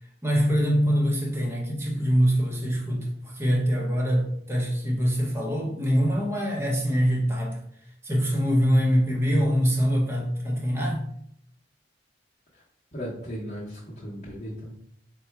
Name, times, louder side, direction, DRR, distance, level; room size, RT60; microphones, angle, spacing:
voice 1, 0.2-7.6 8.0-11.1, equal, 15° right, -1 dB, 0.8 m, -24 dB
voice 2, 12.9-14.7, equal, 40° left, -7 dB, 1.0 m, -36 dB
4.1 x 2.2 x 4.6 m, 0.71 s
head